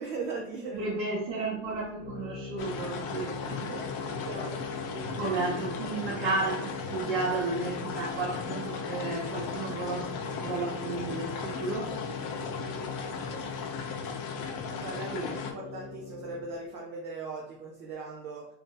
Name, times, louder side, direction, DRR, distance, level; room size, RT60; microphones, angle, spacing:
voice 1, 0.0-0.8 3.1-3.2 3.7-5.4 7.0-7.1 12.4-13.5 14.7-15.2 15.5-18.5, right 3 dB, 35° right, -2 dB, 0.5 m, -40 dB
voice 2, 0.7-3.8 5.2-12.0 12.8-12.9 15.1-15.4, right 3 dB, 50° right, -5 dB, 0.9 m, -33 dB
sound 1, 2.0-16.6, left 5 dB, 90° left, 1.1 m, -41 dB
sound 2, 2.6-15.5, left 5 dB, 40° left, 0.5 m, -37 dB
2.7 x 2.6 x 3.7 m, 0.79 s
supercardioid pair, 155°, 38 cm